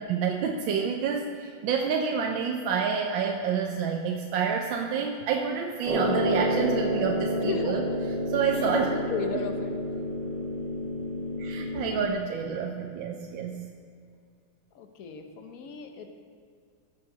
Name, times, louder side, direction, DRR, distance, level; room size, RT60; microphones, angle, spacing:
voice 1, 0.1-7.8 8.3-8.9 11.4-13.7, right 6 dB, 75° right, 2 dB, 1.4 m, -28 dB
sound 1, 5.9-12.1, equal, 60° right, 2.8 m, -29 dB
voice 2, 7.4-7.8 8.5-9.7 14.7-16.1, left 5 dB, 55° left, 5 dB, 1.2 m, -35 dB
16.0 x 6.5 x 5.1 m, 2.2 s
omnidirectional pair, 2.2 m